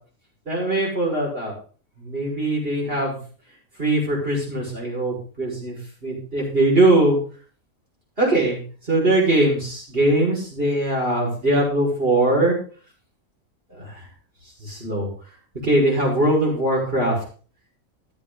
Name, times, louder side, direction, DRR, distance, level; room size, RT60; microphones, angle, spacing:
voice 1, 0.5-1.5 2.0-3.2 3.8-7.2 8.2-8.6 8.9-12.6 13.7-13.9 14.6-15.1 15.6-17.2, right 1 dB, 40° right, -2 dB, 6.5 m, -21 dB
14.0 x 9.8 x 4.1 m, 0.40 s
omnidirectional pair, 1.4 m